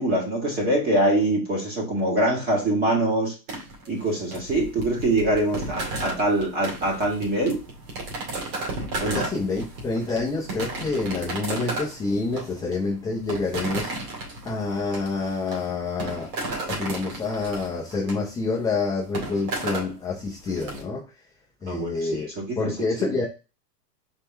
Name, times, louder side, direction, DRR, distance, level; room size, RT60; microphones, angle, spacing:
voice 1, 0.0-3.3 3.9-7.6 9.0-9.2 21.7-21.9 22.4-22.7, right 1 dB, 20° right, -2 dB, 1.8 m, -24 dB
sound 1, 3.5-20.8, right 2 dB, 60° right, 2.1 m, -34 dB
voice 2, 9.1-13.9 14.4-16.3 16.7-21.1 21.6-22.3 22.6-23.2, left 3 dB, 10° left, -4 dB, 0.5 m, -27 dB
4.5 x 3.4 x 3.2 m, 0.30 s
hypercardioid pair, 140°, 49 cm